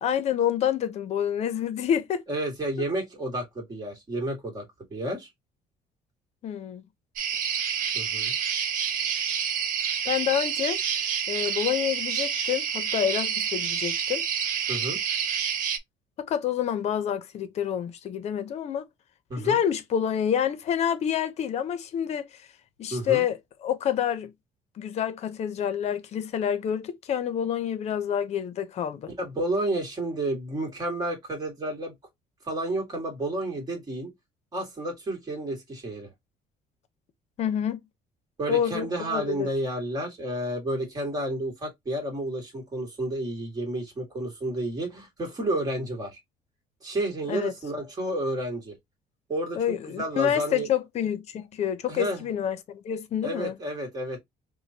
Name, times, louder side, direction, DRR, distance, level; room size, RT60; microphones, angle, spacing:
voice 1, 0.0-2.2 6.4-6.8 10.1-10.8 11.3-14.2 16.2-18.9 19.4-22.3 22.8-24.3 24.8-29.1 37.4-37.8 38.5-39.5 47.3-47.5 49.6-53.5, left 9 dB, 50° left, 0.7 m, -28 dB
voice 2, 2.3-5.3 7.9-8.3 14.7-15.0 19.3-19.6 22.9-23.2 29.2-31.9 32.5-34.1 34.5-36.1 38.4-46.2 46.8-48.8 49.3-49.6 49.9-50.7 51.9-52.3 53.2-54.2, right 1 dB, 25° right, 1.7 m, -31 dB
sound 1, 7.2-15.8, right 8 dB, 70° right, 0.8 m, -28 dB
5.0 x 2.2 x 2.7 m
cardioid pair, 145°, 15 cm